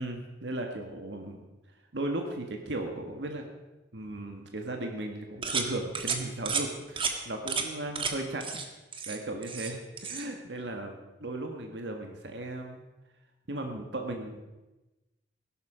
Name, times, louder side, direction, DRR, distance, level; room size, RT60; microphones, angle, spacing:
voice 1, 0.0-1.5 1.9-3.5 3.9-8.5 9.1-12.8 13.5-14.4, right 2 dB, 75° right, 3 dB, 1.6 m, -36 dB
sound 1, 5.4-5.7 6.0-6.2 6.5-6.7 7.0-7.1 7.5-7.7 8.0-8.1 8.4-8.7 8.9-9.7 10.0-10.3, right 5 dB, 30° right, 1.5 m, -31 dB
16.0 x 12.0 x 5.0 m, 1.1 s
head